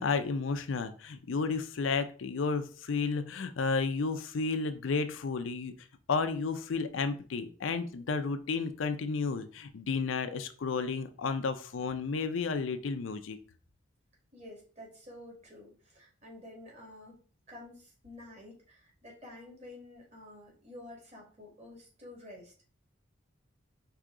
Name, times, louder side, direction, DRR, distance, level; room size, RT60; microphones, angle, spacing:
voice 1, 0.0-5.7 6.1-13.4, left 4 dB, 80° left, 9 dB, 0.5 m, -32 dB
voice 2, 14.3-17.2 17.5-22.6, left 1 dB, 35° right, -2 dB, 1.8 m, -50 dB
4.8 x 2.8 x 3.7 m, 0.40 s
head